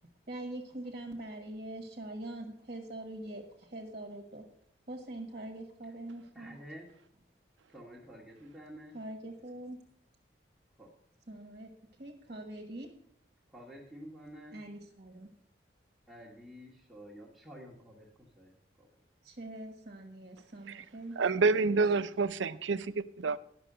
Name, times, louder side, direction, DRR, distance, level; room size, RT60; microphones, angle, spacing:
voice 1, 0.3-4.5 4.9-6.6 8.9-9.8 11.3-11.7 12.0-12.9 14.5-15.3 19.2-21.7, right 1 dB, 45° right, 2 dB, 1.3 m, -43 dB
voice 2, 6.3-6.9 7.7-8.9 10.8-10.9 13.5-14.6 16.1-18.1 18.4-18.5 18.8-18.9, equal, ahead, -7 dB, 1.5 m, -49 dB
voice 3, 21.2-23.4, right 4 dB, 85° right, 14 dB, 0.5 m, -28 dB
11.0 x 6.1 x 6.6 m, 0.66 s
head